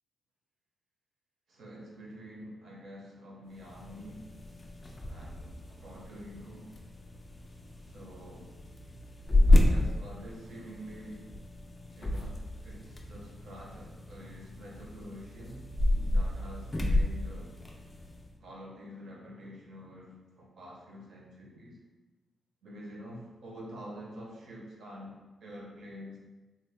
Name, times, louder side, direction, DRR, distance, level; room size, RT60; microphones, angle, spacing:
voice 1, 1.5-4.3 5.1-6.7 7.8-8.5 9.5-11.3 12.0-15.7 16.1-17.6 18.4-21.8 22.6-26.2, equal, 60° right, -2 dB, 0.7 m, -47 dB
sound 1, 3.5-18.3, left 1 dB, 15° left, 0.3 m, -31 dB
3.4 x 2.0 x 3.4 m, 1.2 s
wide cardioid pair, 175°, 0 cm